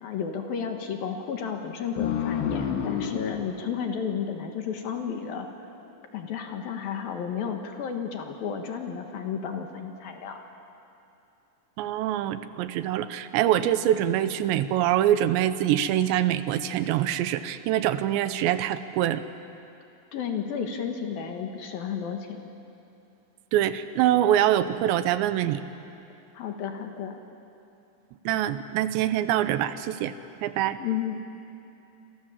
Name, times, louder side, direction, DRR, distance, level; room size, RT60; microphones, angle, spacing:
voice 1, 0.0-5.7 6.1-10.4 20.1-22.5 26.3-27.2 30.8-31.2, left 7 dB, 65° left, 4 dB, 3.0 m, -32 dB
sound 1, 2.0-5.1, left 8 dB, 85° left, 4.1 m, -31 dB
voice 2, 11.8-19.2 23.5-25.6 28.3-30.1 30.4-30.8, right 12 dB, 85° right, 12 dB, 3.0 m, -24 dB
27.5 x 26.5 x 7.4 m, 2.8 s
omnidirectional pair, 5.1 m